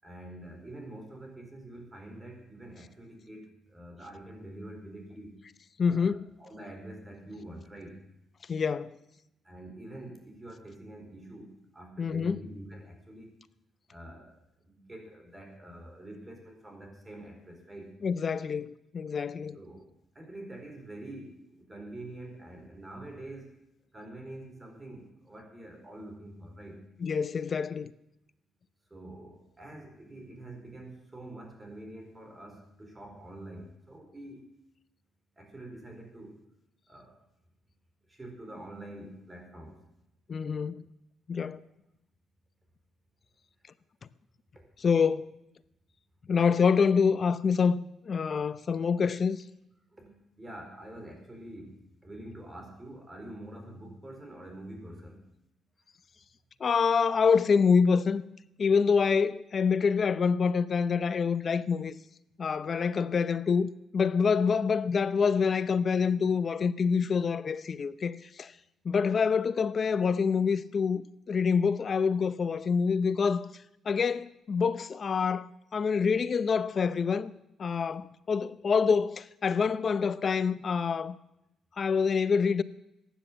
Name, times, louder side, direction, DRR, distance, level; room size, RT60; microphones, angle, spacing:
voice 1, 0.0-5.3 5.8-6.1 6.4-8.0 9.4-13.3 13.9-18.0 19.5-19.8 20.1-23.6 23.9-26.8 28.9-34.5 35.4-36.4 36.9-37.2 38.1-39.8 44.5-44.6 49.9-55.2 55.8-55.9, right 1 dB, 20° right, 4.5 m, -46 dB
voice 2, 5.8-6.3 8.5-9.0 12.0-12.4 18.0-19.6 27.0-27.9 40.3-40.9 41.3-41.6 44.8-45.3 46.3-47.8 48.0-49.4 56.6-58.2 58.6-61.9 62.4-68.5 68.8-73.5 73.8-77.3 77.6-81.2 81.8-82.6, left 5 dB, 45° left, 0.7 m, -26 dB
15.0 x 10.0 x 7.5 m
cardioid pair, 90°, 0 cm